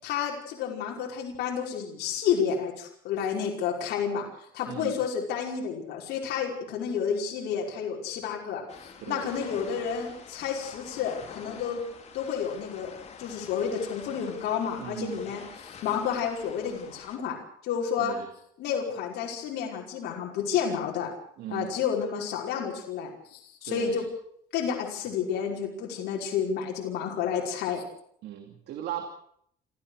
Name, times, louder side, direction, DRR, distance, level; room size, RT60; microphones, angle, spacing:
voice 1, 0.0-4.3 4.5-11.8 12.1-12.9 13.2-18.1 18.6-21.1 21.5-24.1 24.5-27.8, left 7 dB, 80° left, -1 dB, 5.5 m, -30 dB
voice 2, 4.7-5.0 9.0-9.3 14.8-15.2 18.0-18.3 21.4-21.8 23.6-24.0 28.2-29.1, right 11 dB, 75° right, 6 dB, 2.8 m, -37 dB
sound 1, 8.7-17.2, left 5 dB, 40° left, 4.4 m, -47 dB
28.5 x 14.5 x 6.6 m, 0.68 s
cardioid pair, 110°, 17 cm